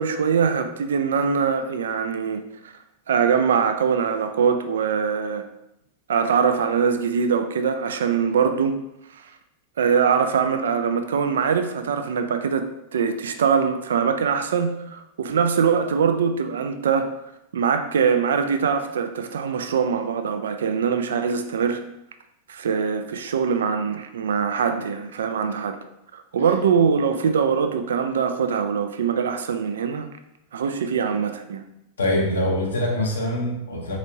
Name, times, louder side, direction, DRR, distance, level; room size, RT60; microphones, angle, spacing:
voice 1, 0.0-2.4 3.1-5.4 6.1-8.7 9.8-12.6 12.9-17.1 17.5-21.8 22.5-25.8 26.1-30.1 30.5-31.6, right 6 dB, 65° right, 8 dB, 0.3 m, -22 dB
voice 2, 32.0-34.0, left 1 dB, 70° left, -2 dB, 0.8 m, -24 dB
4.1 x 3.0 x 2.6 m, 0.84 s
figure-of-eight pair, 90°, 0 cm